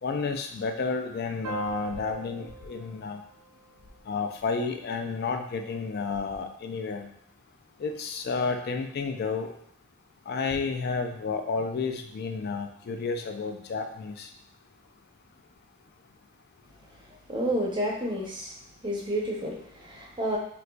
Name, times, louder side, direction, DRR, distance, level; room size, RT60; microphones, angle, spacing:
voice 1, 0.0-3.2 4.1-7.1 7.8-9.6 10.3-14.3, left 4 dB, 45° left, 5 dB, 0.3 m, -31 dB
sound 1, 1.4-4.6, right 4 dB, 80° right, 0.4 m, -43 dB
voice 2, 17.3-18.5 18.8-20.4, equal, 20° right, -2 dB, 0.6 m, -30 dB
3.9 x 2.4 x 2.2 m, 0.71 s
head